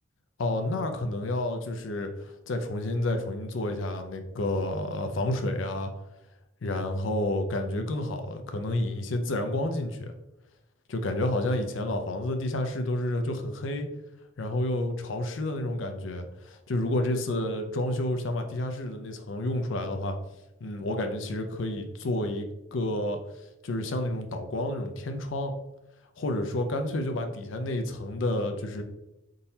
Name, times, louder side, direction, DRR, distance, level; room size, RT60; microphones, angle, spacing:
voice 1, 0.4-5.9 6.6-10.1 10.9-13.9 14.4-20.2 20.6-23.2 23.6-25.5 26.2-28.8, left 1 dB, 80° left, 5 dB, 0.6 m, -30 dB
4.1 x 3.8 x 2.7 m, 0.93 s
head